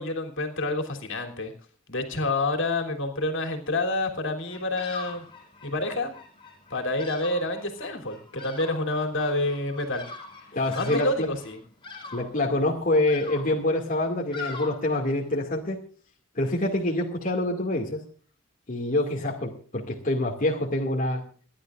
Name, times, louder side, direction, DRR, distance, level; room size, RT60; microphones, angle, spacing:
voice 1, 0.0-1.5 1.9-5.2 5.6-6.1 6.7-10.1 10.7-11.6, left 2 dB, 65° left, 4 dB, 3.3 m, -28 dB
Bird vocalization bird call bird song, 4.4-15.4, left 3 dB, 25° left, 4.7 m, -43 dB
voice 2, 10.5-11.3 12.1-15.8 16.4-18.0 18.7-21.2, left 1 dB, 40° left, -1 dB, 2.3 m, -26 dB
29.0 x 11.5 x 2.5 m, 0.43 s
head